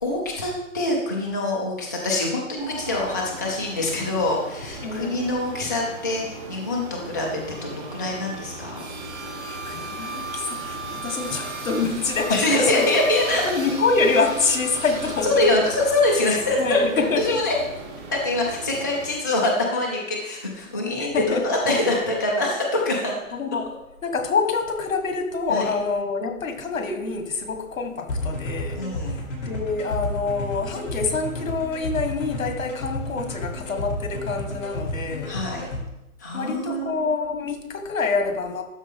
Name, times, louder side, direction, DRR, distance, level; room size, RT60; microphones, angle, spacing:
voice 1, 0.0-7.3 7.6-8.8 12.3-13.4 15.2-16.8 17.2-17.6 18.1-23.2 25.5-25.7 28.8-29.2 35.3-35.6 36.2-36.9, left 2 dB, 15° left, -1 dB, 0.4 m, -24 dB
sound 1, 2.6-19.1, right 3 dB, 55° right, 2.8 m, -37 dB
voice 2, 4.8-5.2 9.4-12.9 13.4-15.5 16.3-17.4 21.0-21.4 23.3-23.7 24.0-35.4 36.3-38.6, left 4 dB, 75° left, 6 dB, 1.6 m, -26 dB
sound 2, 28.1-35.8, left 2 dB, 30° left, 2.5 m, -31 dB
12.5 x 4.2 x 3.6 m, 0.88 s
hypercardioid pair, 150°, 40 cm